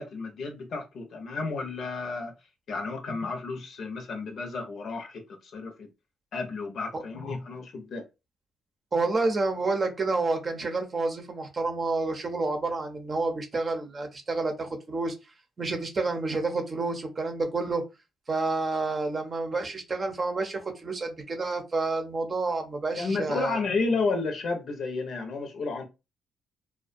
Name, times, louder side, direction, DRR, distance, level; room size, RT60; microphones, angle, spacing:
voice 1, 0.0-2.3 2.7-5.9 6.3-8.0 23.0-25.8, left 3 dB, 65° left, 0.7 m, -32 dB
voice 2, 8.9-15.1 15.6-17.8 18.3-23.6, right 3 dB, 40° right, 0.6 m, -29 dB
2.4 x 2.2 x 2.5 m
cardioid pair, 80°, 0 cm